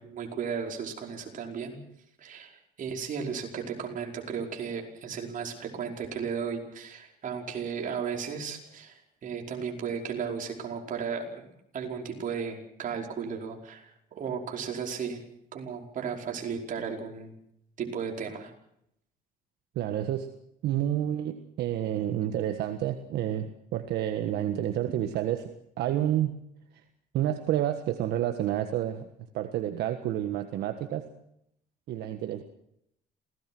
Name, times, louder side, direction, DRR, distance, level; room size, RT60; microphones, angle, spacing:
voice 1, 0.0-1.8 2.2-15.2 15.5-17.3 17.8-18.5, right 6 dB, 50° right, 1 dB, 5.2 m, -35 dB
voice 2, 19.7-20.3 20.6-25.5 25.8-26.3 27.1-29.1 29.3-31.0 31.9-32.4, right 11 dB, 75° right, 7 dB, 1.6 m, -29 dB
27.5 x 18.0 x 6.2 m, 0.76 s
cardioid pair, 110°, 17 cm